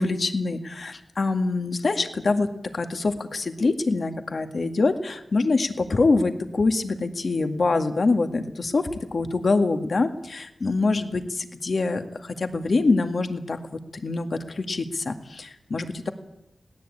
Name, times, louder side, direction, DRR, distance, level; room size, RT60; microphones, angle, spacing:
voice 1, 0.0-2.5 2.7-13.6 13.9-16.1, left 3 dB, 55° left, 7 dB, 1.9 m, -25 dB
21.0 x 18.0 x 8.7 m, 0.84 s
wide cardioid pair, 90°, 0 cm